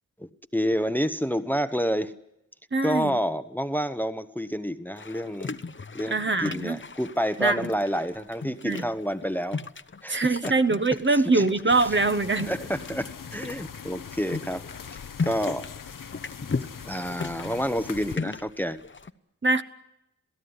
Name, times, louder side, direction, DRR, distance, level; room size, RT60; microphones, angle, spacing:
voice 1, 0.2-2.1 2.8-5.6 5.9-9.6 10.0-10.5 11.1-11.4 11.8-11.9 12.4-14.7 15.2-15.7 16.8-18.8, equal, 5° left, 10 dB, 1.0 m, -29 dB
voice 2, 2.7-3.1 6.1-6.8 7.4-7.6 8.6-8.8 10.1-12.5 19.4-19.6, right 3 dB, 35° right, 9 dB, 1.2 m, -23 dB
sound 1, 5.0-19.1, left 4 dB, 35° left, 0.9 m, -37 dB
sound 2, 11.7-18.2, left 7 dB, 80° left, 1.0 m, -42 dB
27.0 x 17.0 x 9.7 m, 0.85 s
wide cardioid pair, 80°, 32 cm